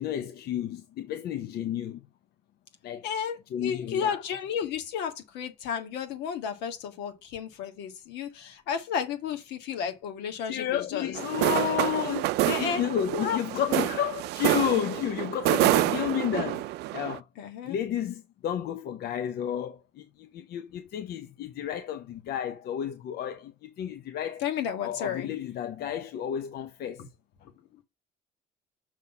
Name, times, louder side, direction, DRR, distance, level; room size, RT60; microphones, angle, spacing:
voice 1, 0.0-2.1 2.8-3.1 3.5-4.2 10.5-16.6 16.9-17.3 17.6-24.4 24.8-27.0, left 10 dB, 70° left, 0.8 m, -31 dB
voice 2, 3.0-11.2 11.4-11.8 12.5-12.8 13.1-13.4 13.7-13.9 15.7-16.0 17.4-17.8 24.4-25.3, left 8 dB, 85° left, 1.7 m, -33 dB
sound 1, 11.2-17.2, right 17 dB, 80° right, 0.4 m, -27 dB
6.3 x 4.0 x 5.4 m
cardioid pair, 110°, 17 cm